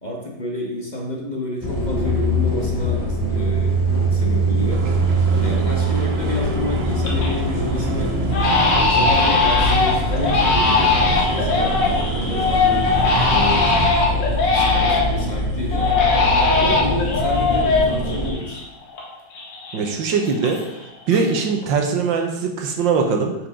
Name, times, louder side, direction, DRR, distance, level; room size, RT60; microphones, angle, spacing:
voice 1, 0.0-3.7 4.1-4.9 5.4-8.1 8.7-12.9 13.3-13.7 14.5-15.9 16.5-18.6, left 1 dB, 25° left, -2 dB, 1.4 m, -29 dB
sound 1, 1.6-18.3, right 1 dB, 10° right, 1.6 m, -23 dB
sound 2, 4.7-13.9, right 5 dB, 60° right, 0.6 m, -30 dB
Crying sobbing, 5.1-5.2 5.7-6.2 6.6-7.4 7.7-7.9 8.3-15.2 15.7-19.0 19.3-20.8 21.1-21.6, left 4 dB, 85° left, 2.3 m, -20 dB
voice 2, 19.7-23.4, right 5 dB, 85° right, 4 dB, 1.8 m, -21 dB
9.1 x 6.5 x 3.8 m, 0.89 s
omnidirectional pair, 2.0 m